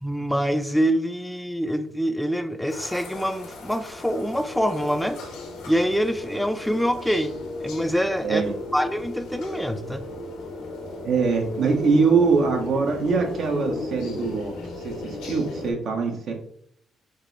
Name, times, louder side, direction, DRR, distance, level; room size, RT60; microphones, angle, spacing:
voice 1, 0.0-5.2 5.7-7.3 7.6-8.4 8.7-10.0, equal, 5° left, 9 dB, 0.4 m, -25 dB
sound 1, 2.7-15.7, left 2 dB, 90° left, 1.1 m, -36 dB
voice 2, 8.2-8.5 11.0-14.5 14.8-16.3, right 4 dB, 65° right, 3 dB, 1.0 m, -23 dB
5.2 x 2.0 x 3.9 m, 0.68 s
supercardioid pair, 65°, 0 cm